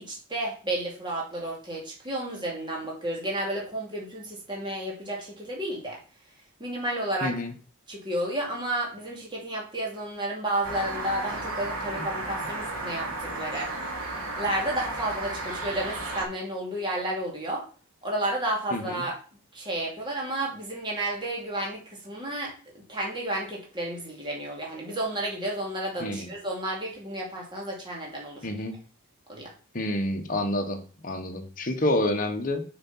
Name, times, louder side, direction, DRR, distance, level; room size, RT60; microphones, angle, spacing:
voice 1, 0.0-6.0 6.6-7.3 7.9-13.7 14.4-17.6 18.0-19.1 19.5-28.5 29.3-29.5, right 1 dB, 20° right, -2 dB, 2.7 m, -31 dB
voice 2, 7.2-7.5 18.7-19.0 26.0-26.3 28.4-28.7 29.7-32.6, left 1 dB, 40° left, 3 dB, 1.4 m, -28 dB
sound 1, 10.6-16.2, right 2 dB, 90° right, 3.5 m, -34 dB
6.6 x 5.9 x 5.7 m, 0.39 s
head